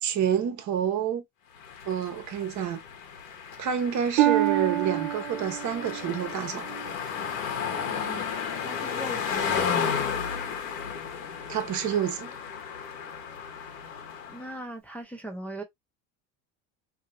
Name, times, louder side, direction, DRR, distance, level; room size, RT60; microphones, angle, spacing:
voice 1, 0.0-1.2 1.9-2.8 3.6-6.7 11.5-12.3, right 8 dB, 45° right, 1.0 m, -28 dB
sound 1, 1.6-14.6, left 7 dB, 80° left, 1.2 m, -33 dB
Harp, 4.2-7.9 8.5-8.9 9.5-9.6, right 13 dB, 80° right, 0.9 m, -28 dB
voice 2, 7.8-8.3 8.5-9.7 14.3-15.6, right 1 dB, 5° left, 0.7 m, -40 dB
2.9 x 2.7 x 2.5 m
supercardioid pair, 100°, 39 cm